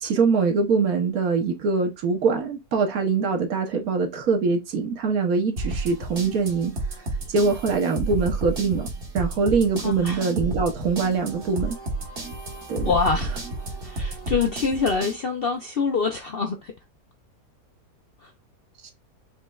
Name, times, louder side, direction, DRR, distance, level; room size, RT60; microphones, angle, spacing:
voice 1, 0.0-6.7 7.3-8.9 9.1-11.8 12.7-12.9 18.8-18.9, right 4 dB, 65° right, 1.4 m, -23 dB
sound 1, 5.6-15.2, right 2 dB, 40° right, 1.2 m, -31 dB
voice 2, 9.8-10.3 12.8-13.4 13.8-16.7 18.2-18.3, left 5 dB, 60° left, 0.6 m, -25 dB
5.4 x 3.2 x 2.3 m
omnidirectional pair, 1.7 m